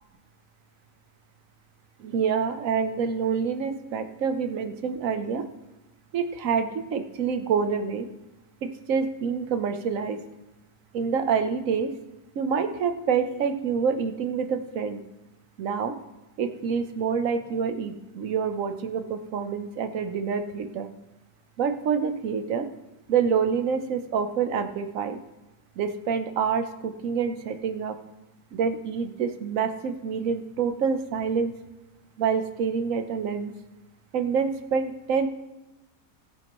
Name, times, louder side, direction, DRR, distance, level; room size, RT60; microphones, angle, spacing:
voice 1, 2.0-5.4 6.1-8.1 8.6-10.2 10.9-11.9 12.3-15.0 15.6-16.0 16.4-20.9 21.6-22.7 23.1-25.2 25.8-28.0 28.5-31.5 32.2-33.5 34.1-35.3, right 6 dB, 60° right, 8 dB, 1.2 m, -27 dB
18.0 x 9.7 x 3.1 m, 1.0 s
omnidirectional pair, 1.7 m